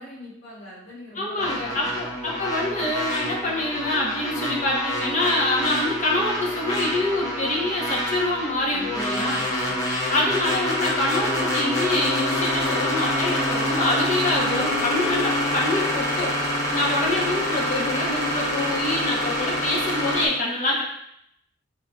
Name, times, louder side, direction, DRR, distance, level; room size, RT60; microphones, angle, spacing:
voice 1, 0.0-2.0 8.6-9.9, left 1 dB, 80° left, -6 dB, 1.7 m, -44 dB
voice 2, 1.2-9.4 10.1-16.3 16.7-20.8, left 2 dB, 40° left, -3 dB, 1.0 m, -25 dB
sound 1, 1.4-20.3, left 1 dB, 20° left, 0.8 m, -26 dB
3.8 x 2.7 x 4.4 m, 0.75 s
head